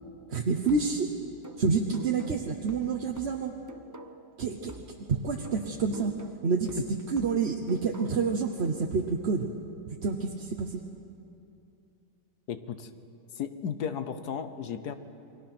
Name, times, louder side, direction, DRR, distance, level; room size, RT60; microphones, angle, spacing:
voice 1, 0.3-1.1 1.6-3.6 4.4-4.7 5.1-6.1 6.4-9.5 9.9-10.8, right 4 dB, 45° right, 3 dB, 1.0 m, -28 dB
sound 1, 0.7-4.4 4.7-8.4, right 1 dB, 20° right, 0.5 m, -48 dB
voice 2, 12.5-12.9 13.4-14.9, left 7 dB, 65° left, 10 dB, 1.4 m, -34 dB
29.0 x 22.0 x 6.0 m, 2.7 s
omnidirectional pair, 1.9 m